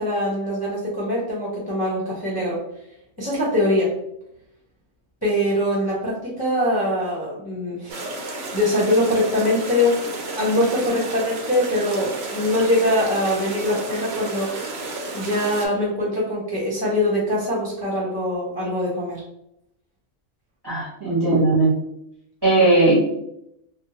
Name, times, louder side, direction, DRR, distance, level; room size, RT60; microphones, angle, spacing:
voice 1, 0.0-2.6 3.2-3.9 5.2-8.0 8.5-10.0 10.4-14.8 15.1-19.2, left 1 dB, 25° left, -7 dB, 0.6 m, -23 dB
sound 1, 7.9-15.7, right 2 dB, 60° right, 0.8 m, -32 dB
voice 2, 20.6-21.7 22.4-23.0, right 2 dB, 25° right, -6 dB, 0.7 m, -17 dB
2.8 x 2.2 x 2.8 m, 0.80 s
omnidirectional pair, 1.3 m